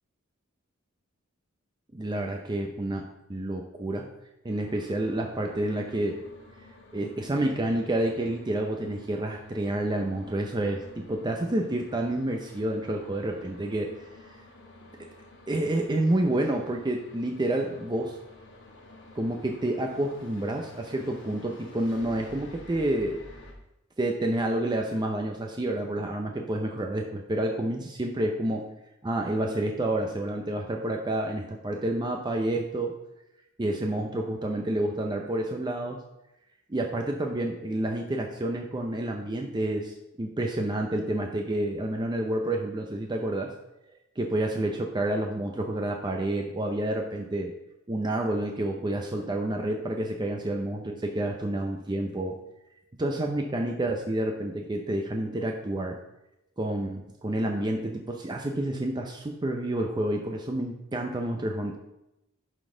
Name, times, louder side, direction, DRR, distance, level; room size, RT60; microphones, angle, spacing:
voice 1, 1.9-4.1 4.4-6.2 6.9-13.9 15.5-18.2 19.2-23.2 24.0-28.7 29.0-32.9 33.6-36.0 36.7-43.5 44.2-47.5 47.9-52.4 53.0-56.0 56.6-61.8, right 1 dB, 20° right, 2 dB, 0.5 m, -29 dB
sound 1, 4.5-23.5, left 2 dB, 60° left, 1.4 m, -50 dB
11.0 x 4.0 x 3.8 m, 0.90 s
head